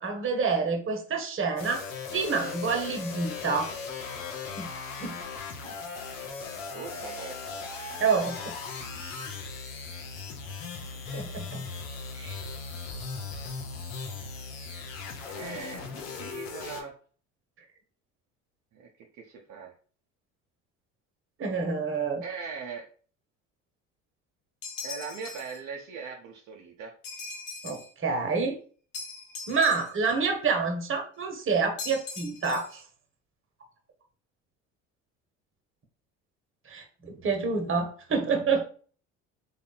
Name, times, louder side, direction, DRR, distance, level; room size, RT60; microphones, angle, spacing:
voice 1, 0.0-1.9 2.1-3.7 4.6-4.7 5.0-5.2 5.6-5.7 8.0-8.5 11.1-11.6 12.1-12.4 21.4-22.2 27.6-28.6 29.5-32.8 36.7-38.6, right 4 dB, 35° right, 4 dB, 1.0 m, -28 dB
sound 1, 1.6-16.8, left 5 dB, 85° left, 0.8 m, -38 dB
voice 2, 6.7-7.6 15.3-16.9 18.7-18.9 19.2-19.7 22.2-22.9 24.8-26.9, right 5 dB, 55° right, 0 dB, 0.7 m, -40 dB
sound 2, 24.6-25.6 27.0-27.9 28.9-30.1 31.8-32.8, left 4 dB, 60° left, 1.1 m, -40 dB
3.4 x 2.3 x 3.8 m, 0.42 s
hypercardioid pair, 65°, 38 cm